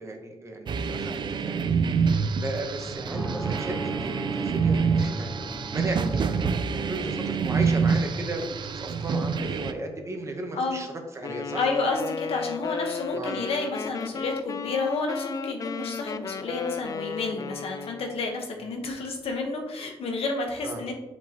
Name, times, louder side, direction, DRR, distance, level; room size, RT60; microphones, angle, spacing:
voice 1, 0.0-1.8 2.1-5.3 5.7-11.6 13.1-13.4 20.6-20.8, right 2 dB, 30° right, 3 dB, 1.0 m, -35 dB
sound 1, 0.7-9.7, right 5 dB, 50° right, 0.4 m, -27 dB
sound 2, 2.8-8.3, right 1 dB, ahead, 0.6 m, -39 dB
voice 2, 10.5-10.8 11.6-20.9, left 3 dB, 75° left, 2 dB, 1.3 m, -30 dB
Wind instrument woodwind instrument, 11.2-18.2, left 5 dB, 35° left, 0.3 m, -34 dB
9.9 x 5.2 x 3.0 m, 1.1 s
wide cardioid pair, 145°, 10 cm